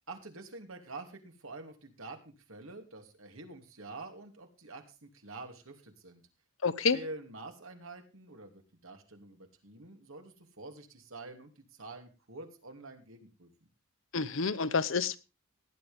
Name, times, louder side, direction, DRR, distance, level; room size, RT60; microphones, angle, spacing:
voice 1, 0.1-6.2 6.9-13.5, right 2 dB, 85° right, 5 dB, 2.8 m, -47 dB
voice 2, 6.6-7.0 14.1-15.2, left 5 dB, 75° left, 15 dB, 0.9 m, -28 dB
18.0 x 10.5 x 3.5 m, 0.30 s
head